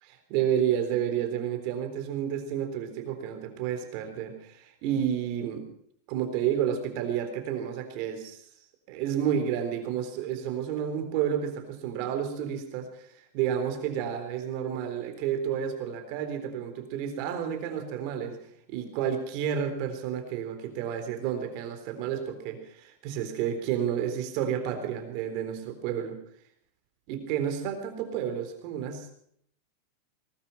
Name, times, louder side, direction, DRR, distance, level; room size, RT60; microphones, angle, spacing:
voice 1, 0.0-5.7 6.1-8.4 8.9-18.4 18.7-26.2 27.1-29.1, right 9 dB, 45° right, 7 dB, 3.8 m, -31 dB
20.0 x 12.5 x 5.8 m, 0.66 s
supercardioid pair, 155°, 0 cm